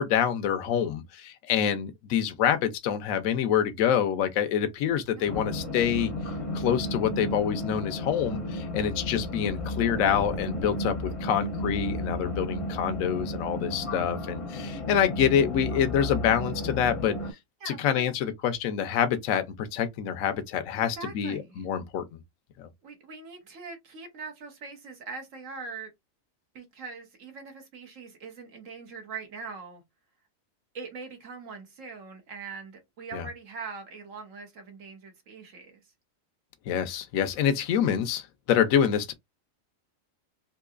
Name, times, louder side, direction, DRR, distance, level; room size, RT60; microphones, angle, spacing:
voice 1, 0.0-6.1 6.5-11.0 11.2-17.2 17.7-22.2 22.6-22.7 33.1-33.3 36.7-39.1, left 8 dB, 80° left, 1.0 m, -26 dB
sound 1, 5.3-17.3, left 1 dB, 30° left, 0.6 m, -33 dB
voice 2, 17.6-18.1 20.8-21.6 22.8-25.9 26.5-29.8 30.7-35.8, right 4 dB, 70° right, 1.4 m, -42 dB
3.8 x 2.7 x 2.4 m
omnidirectional pair, 1.4 m